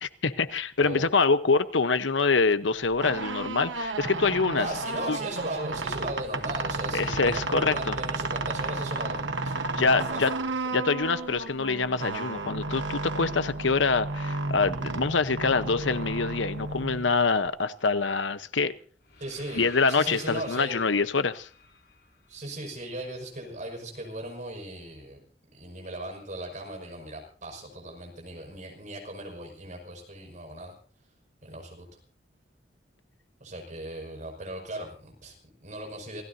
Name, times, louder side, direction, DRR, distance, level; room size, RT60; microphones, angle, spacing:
voice 1, 0.0-4.7 5.1-5.2 6.9-8.0 9.8-10.3 10.7-18.7 19.5-21.5, left 4 dB, 85° left, 12 dB, 1.0 m, -25 dB
voice 2, 0.8-1.1 4.6-10.4 19.2-20.7 22.3-25.2 25.5-30.7 31.4-31.9 33.4-36.2, right 1 dB, 45° right, 2 dB, 5.8 m, -38 dB
sound 1, 2.8-17.5, right 3 dB, 75° right, 1.2 m, -33 dB
sound 2, 19.0-23.1, left 5 dB, 65° left, 5.7 m, -50 dB
27.5 x 16.5 x 2.8 m, 0.42 s
head